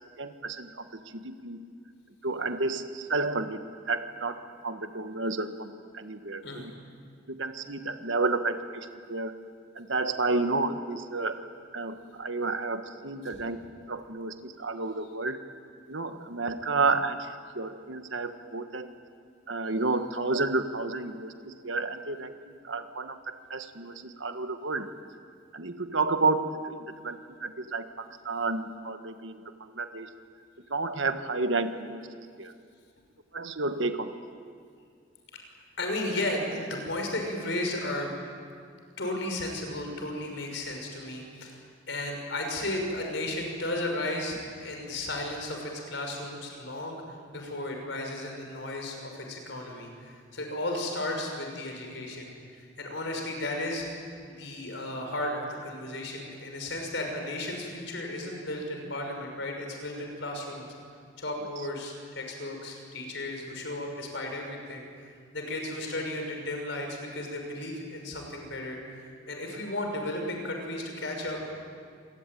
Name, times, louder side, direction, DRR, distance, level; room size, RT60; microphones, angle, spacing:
voice 1, 0.2-1.7 2.2-6.7 7.3-9.3 9.7-11.4 11.7-13.6 13.9-15.4 15.9-18.9 19.5-24.9 25.5-30.1 30.7-32.5 33.3-34.2, right 3 dB, 75° right, 8 dB, 1.5 m, -31 dB
voice 2, 35.8-38.1 39.0-41.6 41.9-52.3 52.6-53.9 54.3-60.7 61.2-64.9 65.3-71.5, left 1 dB, 70° left, 3 dB, 5.9 m, -34 dB
26.5 x 20.5 x 9.2 m, 2.2 s
head